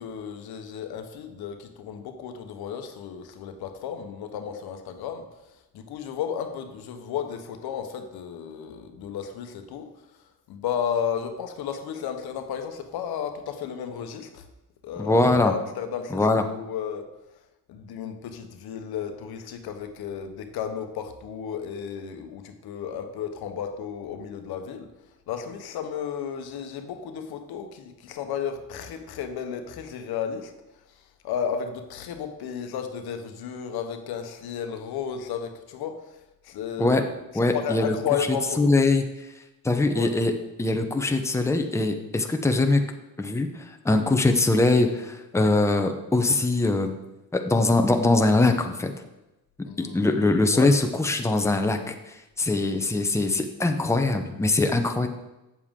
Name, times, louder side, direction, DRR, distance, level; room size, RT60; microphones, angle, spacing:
voice 1, 0.0-5.2 5.7-9.9 10.5-14.4 14.8-16.3 16.5-17.1 17.7-24.9 25.3-30.5 31.2-37.1 37.3-38.7 39.9-40.1 49.6-50.7, left 8 dB, 85° left, 7 dB, 1.0 m, -33 dB
voice 2, 15.0-15.5 16.1-16.4 36.8-37.0 37.3-37.9 38.6-39.0 39.6-40.3 40.6-42.8 43.2-46.9 47.3-48.9 49.8-55.1, left 2 dB, 10° left, 5 dB, 0.8 m, -22 dB
8.4 x 7.2 x 3.7 m, 0.96 s
cardioid pair, 100°, 37 cm